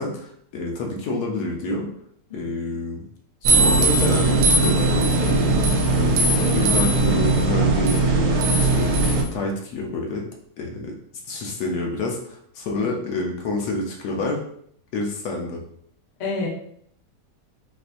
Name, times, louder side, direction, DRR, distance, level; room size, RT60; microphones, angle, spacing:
voice 1, 0.0-1.9 2.3-3.1 3.4-5.4 5.9-8.9 9.3-10.3 10.6-10.9 11.3-14.4 14.9-15.6, left 2 dB, 70° left, 0 dB, 1.2 m, -28 dB
voice 2, 2.3-2.6 12.8-13.0 16.2-16.5, left 3 dB, 50° left, -2 dB, 0.5 m, -30 dB
sound 1, 3.4-9.2, right 2 dB, 75° right, 1.2 m, -19 dB
4.4 x 2.6 x 2.5 m, 0.66 s
omnidirectional pair, 1.9 m